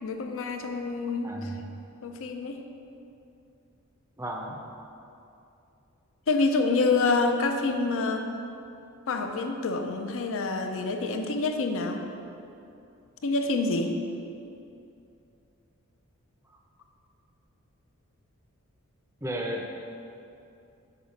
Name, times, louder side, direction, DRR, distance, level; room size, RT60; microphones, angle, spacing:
voice 1, 0.0-1.5 2.0-2.6 6.3-8.3 9.1-12.1 13.2-14.0, left 3 dB, 65° left, 5 dB, 0.5 m, -27 dB
voice 2, 1.2-1.6 4.2-4.6 19.2-19.6, right 1 dB, 10° right, 0 dB, 0.5 m, -33 dB
5.7 x 4.7 x 5.1 m, 2.7 s
head